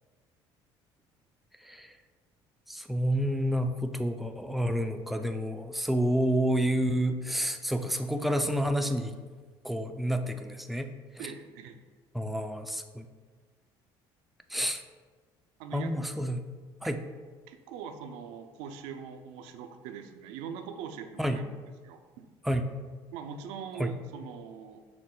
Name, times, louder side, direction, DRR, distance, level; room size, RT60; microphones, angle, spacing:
voice 1, 1.6-2.0 2.7-9.1 9.6-10.9 12.1-13.1 14.5-14.8 15.7-16.4 16.8-17.0 21.2-21.4 22.4-22.7 23.8-23.9, equal, ahead, 7 dB, 0.4 m, -29 dB
voice 2, 11.2-11.8 15.6-15.9 17.5-21.4 21.8-22.3 23.1-24.8, right 7 dB, 80° right, 7 dB, 0.4 m, -42 dB
5.8 x 2.1 x 3.7 m, 1.4 s
hypercardioid pair, 65°, 11 cm